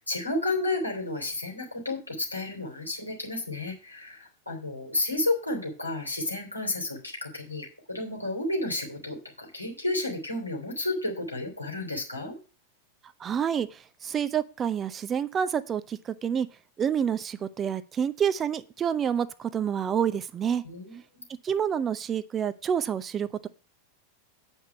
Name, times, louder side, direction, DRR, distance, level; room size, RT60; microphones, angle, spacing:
voice 1, 0.0-12.4 20.6-21.2, left 2 dB, 85° left, 0 dB, 3.1 m, -32 dB
voice 2, 13.2-16.5 16.8-20.6 21.4-23.5, right 8 dB, 25° right, 13 dB, 0.6 m, -28 dB
8.8 x 5.5 x 6.8 m, 0.36 s
figure-of-eight pair, 90°, 0 cm